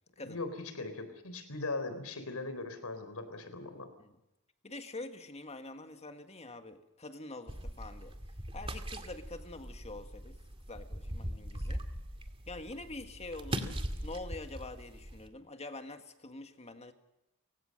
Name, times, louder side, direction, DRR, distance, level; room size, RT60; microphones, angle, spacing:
voice 1, 0.2-3.9, left 3 dB, 80° left, 10 dB, 3.9 m, -39 dB
voice 2, 4.6-8.2 8.5-10.4 10.7-11.8 12.5-16.9, left 2 dB, 30° left, 7 dB, 1.8 m, -45 dB
sound 1, 7.5-15.3, right 1 dB, 25° right, 2.0 m, -40 dB
29.5 x 16.5 x 6.6 m, 0.94 s
head